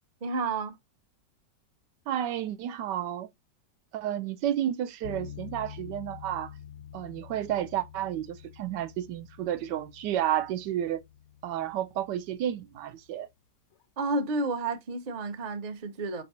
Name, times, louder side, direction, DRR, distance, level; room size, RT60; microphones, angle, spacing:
voice 1, 0.2-0.8 14.0-16.2, right 3 dB, 40° right, 0.5 m, -31 dB
voice 2, 2.1-3.3 3.9-6.5 6.9-11.0 11.4-13.3, right 11 dB, 80° right, 1.2 m, -31 dB
sound 1, 5.0-13.2, left 9 dB, 75° left, 0.6 m, -47 dB
5.3 x 3.3 x 2.7 m
omnidirectional pair, 1.9 m